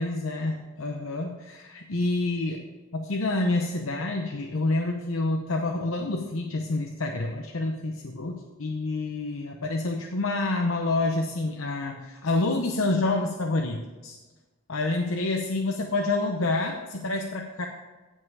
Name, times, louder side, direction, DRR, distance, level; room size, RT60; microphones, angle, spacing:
voice 1, 0.0-2.6 2.9-14.2 14.7-17.7, left 2 dB, 75° left, 2 dB, 0.9 m, -28 dB
16.5 x 5.6 x 4.8 m, 1.2 s
head